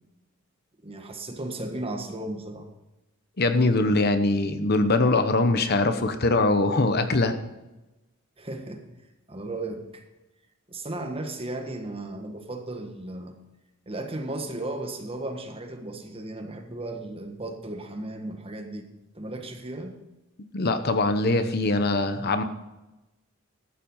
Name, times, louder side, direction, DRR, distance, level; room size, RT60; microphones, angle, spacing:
voice 1, 0.8-2.7 8.4-8.9 9.3-10.0 10.7-13.3 13.8-18.8 19.1-20.0, right 2 dB, 30° right, 4 dB, 1.5 m, -35 dB
voice 2, 3.4-7.3 20.5-22.4, left 2 dB, 50° left, 9 dB, 0.9 m, -22 dB
13.5 x 7.5 x 5.5 m, 1.0 s
head